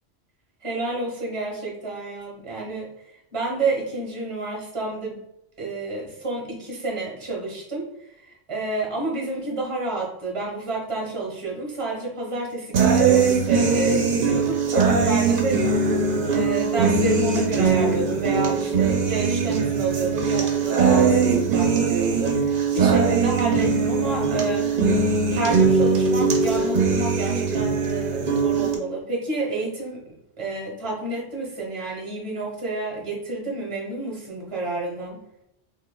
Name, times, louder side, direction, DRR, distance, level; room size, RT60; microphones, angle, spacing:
voice 1, 0.6-2.9 3.3-5.2 5.6-7.8 8.2-15.6 16.0-24.7 25.3-30.0 30.4-35.2, right 3 dB, 30° right, -2 dB, 1.0 m, -29 dB
sound 1, 12.7-28.8, right 5 dB, 55° right, 0.8 m, -21 dB
5.3 x 2.4 x 2.2 m, 0.79 s
omnidirectional pair, 1.2 m